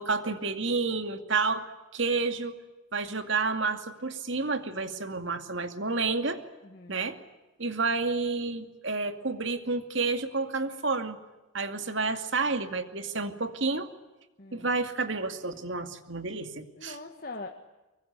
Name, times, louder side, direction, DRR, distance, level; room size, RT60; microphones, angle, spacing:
voice 1, 0.0-2.6 2.9-6.4 6.9-7.2 7.6-11.2 11.5-13.9 14.5-17.0, right 3 dB, 60° right, 8 dB, 2.4 m, -30 dB
voice 2, 6.6-7.0 14.4-14.7 16.8-17.7, left 3 dB, 45° left, 4 dB, 1.7 m, -42 dB
24.0 x 23.0 x 9.7 m, 1.1 s
head